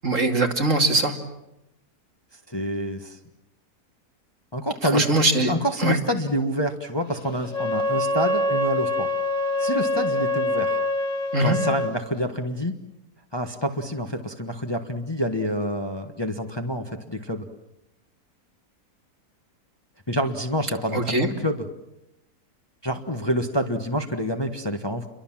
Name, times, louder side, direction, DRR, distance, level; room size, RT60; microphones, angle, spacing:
voice 1, 0.0-1.1 4.9-5.5 5.8-6.0 11.3-11.6 20.9-21.3, right 2 dB, 50° right, 3 dB, 2.9 m, -21 dB
voice 2, 2.5-3.2 4.5-5.1 5.4-9.1 9.6-10.8 11.4-12.7 13.3-17.4 20.1-21.6 22.8-25.0, equal, 15° left, 5 dB, 1.4 m, -27 dB
Wind instrument woodwind instrument, 7.5-11.9, left 2 dB, 55° left, 2.2 m, -25 dB
30.0 x 23.5 x 7.5 m, 0.89 s
omnidirectional pair, 1.7 m